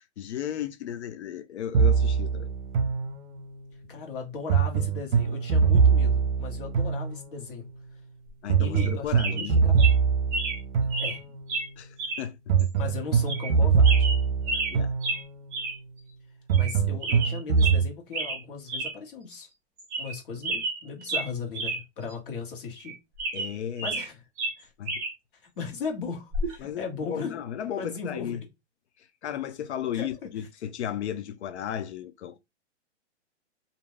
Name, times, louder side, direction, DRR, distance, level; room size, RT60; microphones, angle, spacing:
voice 1, 0.0-2.5 8.4-9.6 11.8-12.7 14.4-14.9 23.3-23.9 24.8-25.0 26.6-28.4 29.0-32.4, left 9 dB, 70° left, 0.5 m, -35 dB
sound 1, 1.7-3.6 4.5-7.6 8.5-11.6 12.5-15.5 16.5-17.9, right 6 dB, 55° right, 0.7 m, -23 dB
voice 2, 3.9-7.7 8.6-9.8 11.0-11.2 12.7-14.1 16.5-19.5 20.0-23.0 23.8-24.1 24.6-24.7 25.6-27.3 27.8-28.4 29.9-30.3, left 5 dB, 45° left, 1.3 m, -37 dB
sound 2, 8.7-8.9 9.2-9.5 9.8-9.9 10.3-10.6 10.9-11.2 11.5-11.7 12.0-12.2 12.6-12.7 13.3-13.5 13.8-14.8 15.0-15.2 15.5-15.8 16.1-16.2 16.5-16.7 17.0-17.8 18.1-18.4 18.7-18.9 19.3-19.4 19.8-20.2 20.4-21.8 22.1-22.2 22.8-24.1 24.4-25.1 26.3-26.5, right 3 dB, 15° right, 0.6 m, -31 dB
2.6 x 2.1 x 3.2 m
hypercardioid pair, 170°, 35 cm